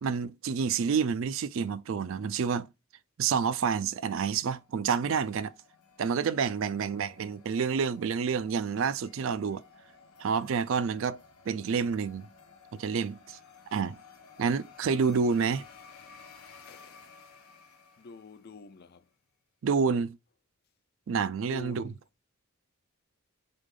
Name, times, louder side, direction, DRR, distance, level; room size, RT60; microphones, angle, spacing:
voice 1, 0.0-2.7 3.2-5.5 6.0-9.6 10.2-11.2 11.5-12.3 12.7-13.4 13.7-14.0 14.4-15.7 19.6-20.2 21.1-21.8, right 6 dB, 60° right, 0.4 m, -28 dB
sound 1, 4.1-18.8, left 5 dB, 85° left, 1.0 m, -55 dB
voice 2, 6.6-7.0 10.1-10.3 16.7-17.1 18.0-19.1 21.4-22.0, left 3 dB, 45° left, 0.4 m, -48 dB
4.0 x 3.4 x 3.7 m
head